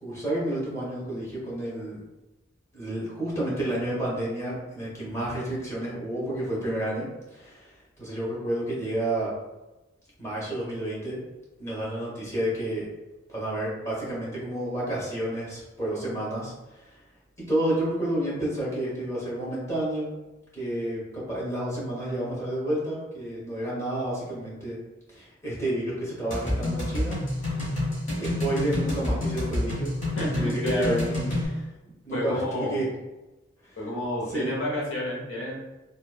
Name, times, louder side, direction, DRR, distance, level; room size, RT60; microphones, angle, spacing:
voice 1, 0.0-2.0 2.7-7.1 7.3-9.3 10.2-11.2 11.6-12.9 13.3-17.0 17.5-20.1 20.5-24.8 25.1-27.2 27.4-27.8 28.2-29.9 30.3-32.9 33.6-33.8 34.3-34.5, right 1 dB, 15° left, -7 dB, 1.0 m, -30 dB
sound 1, 26.3-31.5, left 1 dB, 40° left, 1.1 m, -28 dB
voice 2, 30.2-31.0 32.1-32.8 33.8-35.6, left 1 dB, 80° left, -4 dB, 0.9 m, -30 dB
3.0 x 2.3 x 2.3 m, 1.1 s
head